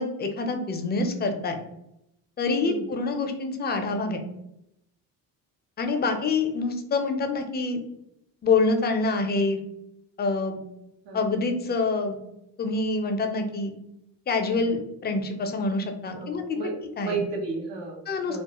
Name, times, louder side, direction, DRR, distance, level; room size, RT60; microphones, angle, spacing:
voice 1, 0.0-1.6 2.4-4.2 5.8-7.8 8.4-9.6 10.2-10.6 11.1-12.2 12.6-13.7 14.3-16.4 17.0-17.2 18.1-18.4, left 3 dB, 25° left, 5 dB, 0.4 m, -26 dB
voice 2, 16.1-16.7 17.0-18.0 18.3-18.4, right 4 dB, 70° right, 1 dB, 0.8 m, -32 dB
2.3 x 2.0 x 2.9 m, 0.82 s
supercardioid pair, 65°, 44 cm